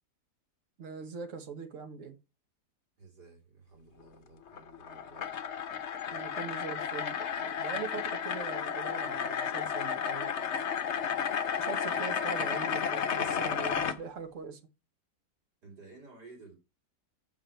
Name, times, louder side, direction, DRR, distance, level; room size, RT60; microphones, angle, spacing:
voice 1, 0.8-2.2 6.1-10.3 11.6-14.6, right 5 dB, 50° right, 1.6 m, -42 dB
voice 2, 3.0-5.6 15.6-16.5, right 3 dB, 75° right, 4.3 m, -54 dB
sound 1, 4.5-14.0, left 7 dB, 50° left, 1.0 m, -33 dB
7.8 x 7.2 x 4.4 m
omnidirectional pair, 1.8 m